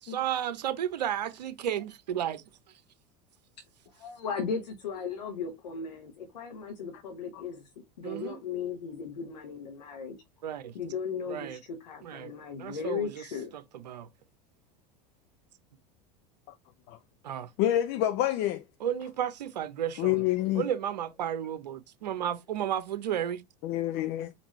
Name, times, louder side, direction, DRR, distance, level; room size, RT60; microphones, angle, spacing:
voice 1, 0.0-2.4 8.0-8.4 10.4-10.7 11.3-11.6 12.0-12.3 12.6-13.2 13.5-14.1 17.2-17.5 18.8-20.2 20.5-23.4, right 10 dB, 85° right, 0.8 m, -33 dB
voice 2, 3.9-7.7 8.0-10.2 10.7-13.5 20.4-20.5, left 6 dB, 85° left, 1.1 m, -36 dB
voice 3, 17.6-18.6 20.0-20.7 23.6-24.3, left 13 dB, 50° left, 0.6 m, -27 dB
5.2 x 2.8 x 3.1 m
hypercardioid pair, 90°, 21 cm